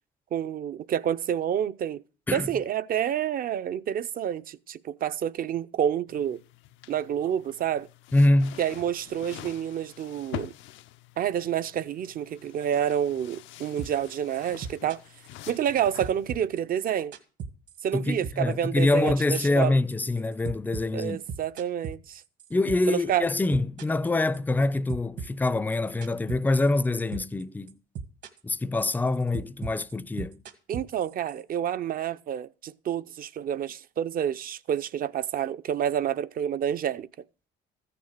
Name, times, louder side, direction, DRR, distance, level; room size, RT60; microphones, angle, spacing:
voice 1, 0.3-2.0 2.3-6.4 6.9-7.9 8.6-10.5 11.2-15.0 15.5-17.1 17.8-19.8 20.9-22.2 22.9-23.2 30.7-37.1, right 9 dB, 45° right, 0.6 m, -28 dB
sound 1, 6.1-16.5, left 15 dB, 75° left, 0.5 m, -46 dB
voice 2, 8.1-8.6 17.9-21.2 22.5-27.8 28.4-30.4, left 2 dB, 10° left, 0.5 m, -25 dB
sound 2, 13.8-14.1 14.3-15.8 16.0-18.0 18.2-18.5 18.8-23.0 23.2-24.6 24.9-26.9 27.1-27.4 27.7-28.5 28.8-31.4, right 6 dB, 65° right, 1.7 m, -37 dB
14.0 x 6.9 x 6.5 m
cardioid pair, 110°, 20 cm